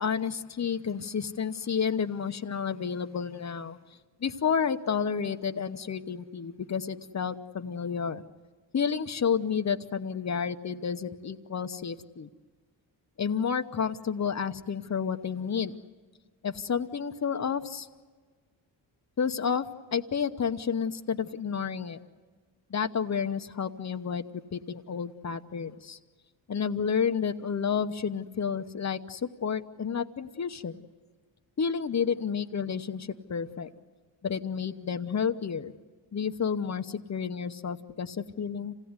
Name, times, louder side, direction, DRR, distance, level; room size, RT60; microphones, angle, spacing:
voice 1, 0.0-3.8 4.2-8.2 8.7-12.3 13.2-15.7 16.4-17.9 19.2-22.0 22.7-26.0 26.5-30.8 31.6-33.7 34.2-35.7 36.1-38.7, left 6 dB, 35° left, 10 dB, 1.0 m, -30 dB
27.5 x 17.0 x 9.6 m, 1.5 s
cardioid pair, 95°, 47 cm